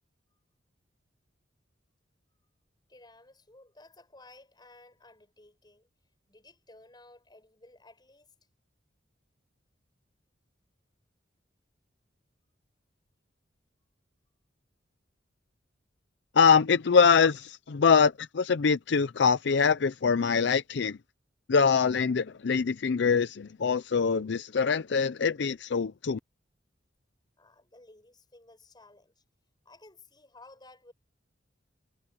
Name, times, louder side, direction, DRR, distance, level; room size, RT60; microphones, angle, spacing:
voice 1, 2.9-5.9 6.3-8.3 27.4-29.2 29.6-30.9, left 2 dB, 25° left, 7.7 m, -55 dB
voice 2, 16.4-21.0 21.5-26.2, left 5 dB, 65° left, 0.5 m, -24 dB
head